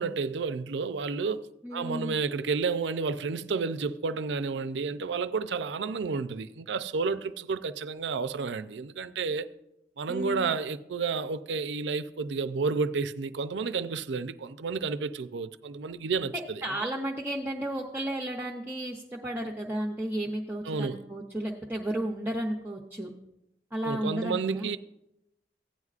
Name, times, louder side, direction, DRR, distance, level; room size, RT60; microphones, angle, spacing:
voice 1, 0.0-1.4 1.7-9.5 10.0-16.7 20.6-21.0 23.8-24.8, right 4 dB, 80° right, 0.5 m, -31 dB
voice 2, 1.6-2.1 10.1-10.5 16.3-23.1 23.7-24.7, right 1 dB, 10° right, 0.6 m, -33 dB
16.0 x 9.4 x 2.4 m
head